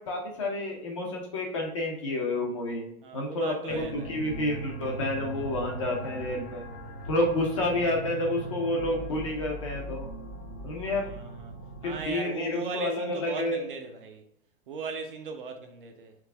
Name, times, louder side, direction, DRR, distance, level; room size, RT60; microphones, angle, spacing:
voice 1, 0.1-2.8 3.1-6.7 7.1-10.1 10.6-11.1 11.8-13.6, left 1 dB, 25° left, 0.4 m, -29 dB
voice 2, 3.0-4.2 7.5-7.6 10.9-11.5 11.8-14.2 14.7-16.2, right 5 dB, 40° right, 0.4 m, -38 dB
sound 1, 3.7-12.1, right 2 dB, 60° left, 1.4 m, -39 dB
4.7 x 3.3 x 3.3 m
supercardioid pair, 160°, 45 cm